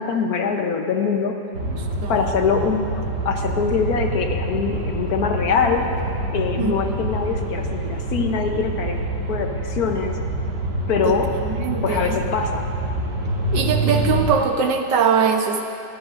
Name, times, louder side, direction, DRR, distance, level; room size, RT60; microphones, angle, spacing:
voice 1, 0.0-1.4 2.1-2.9 3.2-5.9 6.3-9.0 9.3-10.1 10.9-11.3 11.8-12.6, left 5 dB, 65° left, 4 dB, 1.3 m, -23 dB
sound 1, 1.5-14.3, right 1 dB, 70° right, 2.4 m, -26 dB
voice 2, 1.7-2.3 6.6-6.7 11.0-11.1 11.5-12.2 13.5-15.6, right 6 dB, 90° right, 3 dB, 1.7 m, -21 dB
23.5 x 14.0 x 2.6 m, 2.5 s
omnidirectional pair, 1.8 m